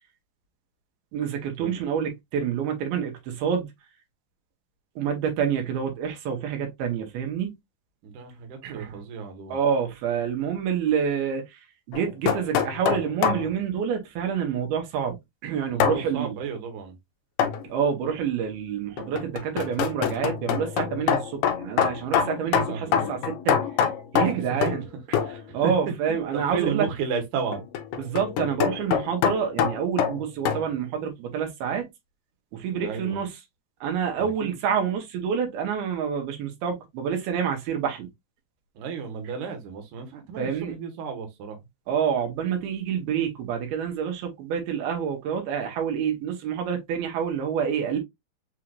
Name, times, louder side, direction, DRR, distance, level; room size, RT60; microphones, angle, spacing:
voice 1, 1.1-3.7 5.0-7.5 8.6-9.0 9.5-11.6 11.9-15.2 15.4-16.3 17.6-23.6 24.1-25.2 25.5-26.9 27.9-31.9 32.5-33.4 33.8-38.1 40.4-40.7 41.9-48.0, right 7 dB, 85° right, 2.9 m, -27 dB
voice 2, 8.0-9.6 15.7-17.0 22.6-23.1 25.2-25.7 26.3-27.7 32.7-33.2 34.2-34.5 38.8-41.6, right 6 dB, 65° right, 2.3 m, -33 dB
sound 1, 11.9-13.5 15.8-16.0 17.4-17.7 19.0-24.9 25.1-25.4 27.5-30.6, left 8 dB, 80° left, 1.9 m, -25 dB
6.2 x 3.0 x 2.4 m
omnidirectional pair, 4.4 m